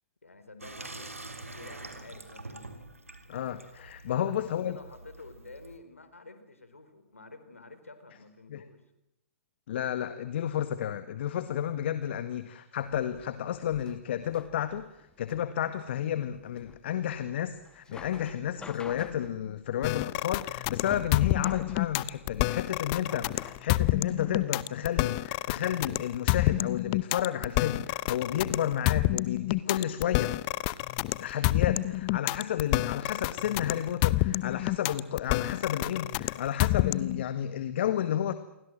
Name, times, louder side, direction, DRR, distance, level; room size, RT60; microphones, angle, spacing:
voice 1, 0.2-2.7 4.3-8.8, left 3 dB, 85° left, 10 dB, 4.0 m, -50 dB
Water tap faucet / Sink (filling or washing), 0.6-5.8, right 2 dB, 85° right, 3.4 m, -46 dB
voice 2, 3.3-4.8 8.5-8.6 9.7-30.3 31.2-38.3, left 10 dB, 55° left, 11 dB, 1.7 m, -31 dB
sound 1, 12.8-24.4, left 5 dB, 10° left, 1.3 m, -49 dB
sound 2, 19.8-37.2, left 20 dB, 35° left, 0.9 m, -28 dB
28.5 x 23.5 x 7.7 m, 0.88 s
figure-of-eight pair, 115°, 7 cm